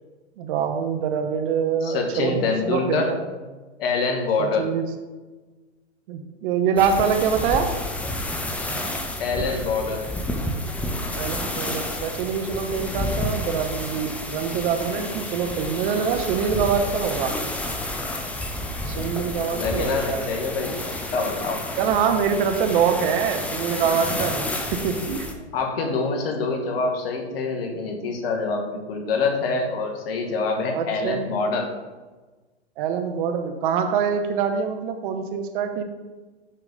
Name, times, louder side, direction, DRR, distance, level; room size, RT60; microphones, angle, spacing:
voice 1, 0.4-2.3 2.6-3.2 4.4-4.8 6.1-7.7 11.1-17.3 18.9-20.3 21.8-24.5 24.8-25.3 30.7-31.2 32.8-35.8, right 7 dB, 50° right, 6 dB, 1.0 m, -24 dB
voice 2, 1.8-3.1 3.8-4.6 9.2-10.0 19.3-21.6 25.5-31.7, left 4 dB, 60° left, 3 dB, 1.3 m, -25 dB
sound 1, 6.8-25.3, left 1 dB, 5° left, 0.4 m, -30 dB
6.7 x 5.1 x 3.8 m, 1.3 s
hypercardioid pair, 110°, 33 cm